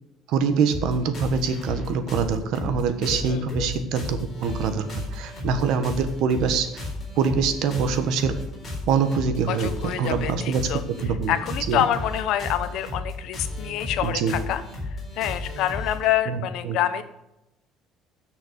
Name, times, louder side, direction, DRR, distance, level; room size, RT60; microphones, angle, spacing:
voice 1, 0.3-6.9 7.2-8.4 8.9-10.7 11.0-11.3 11.7-11.9 14.0-14.3 16.3-16.8, right 6 dB, 65° right, 9 dB, 1.2 m, -24 dB
sound 1, 0.7-16.1, left 2 dB, 25° left, 3.9 m, -34 dB
voice 2, 9.5-10.8 11.3-14.6 15.2-17.0, left 11 dB, 60° left, 11 dB, 0.9 m, -26 dB
10.0 x 6.3 x 6.7 m, 0.91 s
cardioid pair, 170°, 0 cm